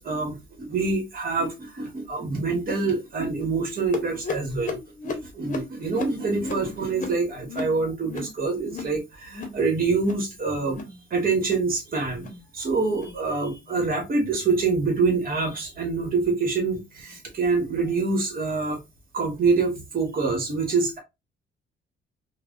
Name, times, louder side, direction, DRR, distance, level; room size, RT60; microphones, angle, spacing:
voice 1, 0.0-4.8 5.0-10.8 11.1-12.3 12.5-18.8 19.1-21.0, right 4 dB, 45° right, 1.3 m, -26 dB
sound 1, 3.9-9.0 9.2-9.6 9.9-10.3 10.6-11.0 11.3-11.7 12.1-12.4 12.9-13.2 13.7-13.9 14.5-14.7 15.4-15.5 16.2-16.3 17.1-17.2, left 3 dB, 40° left, 0.8 m, -36 dB
3.2 x 2.1 x 2.4 m
cardioid pair, 90°, 20 cm